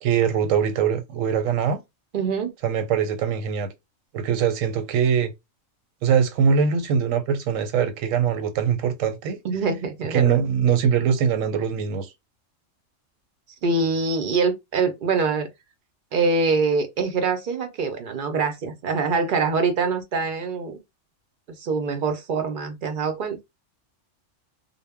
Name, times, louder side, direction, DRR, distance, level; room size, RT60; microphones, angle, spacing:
voice 1, 0.0-1.8 2.6-3.7 4.1-5.3 6.0-9.4 10.1-12.1, right 7 dB, 90° right, 1.0 m, -22 dB
voice 2, 2.1-2.5 9.4-10.4 13.6-15.5 16.1-20.8 21.6-23.4, right 4 dB, 55° right, 0.6 m, -24 dB
2.1 x 2.0 x 3.4 m
omnidirectional pair, 1.3 m